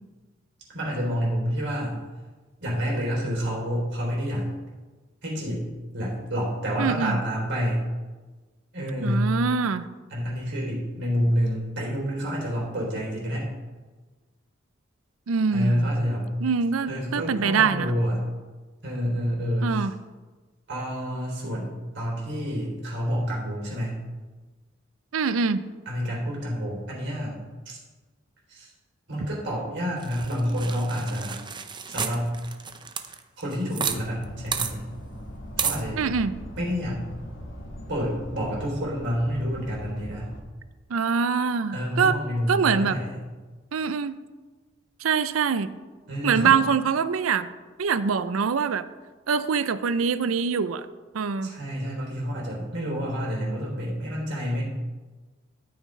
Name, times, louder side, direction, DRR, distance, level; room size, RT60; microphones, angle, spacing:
voice 1, 0.7-2.0 2.6-4.5 5.2-5.7 5.9-7.9 8.7-9.4 10.1-13.5 15.5-16.3 16.9-18.3 18.8-19.9 20.7-24.0 25.9-27.4 27.7-27.8 28.5-28.7 29.1-31.4 31.9-32.4 33.4-34.8 35.6-36.0 36.6-37.1 37.9-40.3 41.7-43.2 46.1-46.6 51.4-54.7, equal, 60° right, -3 dB, 3.4 m, -28 dB
voice 2, 6.8-7.2 9.0-9.9 15.3-15.9 16.4-17.9 19.6-19.9 25.1-25.6 36.0-36.3 40.9-42.2 42.5-43.0 43.7-44.2 45.0-45.7 46.2-47.5 47.8-48.8 49.3-50.9 51.1-51.5, right 5 dB, 90° right, 14 dB, 0.5 m, -24 dB
sound 1, 30.0-34.0 34.2-34.3 34.5-34.7 35.6-35.8, right 6 dB, 25° right, 0.6 m, -31 dB
sound 2, 33.8-40.4, equal, 65° left, 1.8 m, -40 dB
13.0 x 8.6 x 3.2 m, 1.3 s
head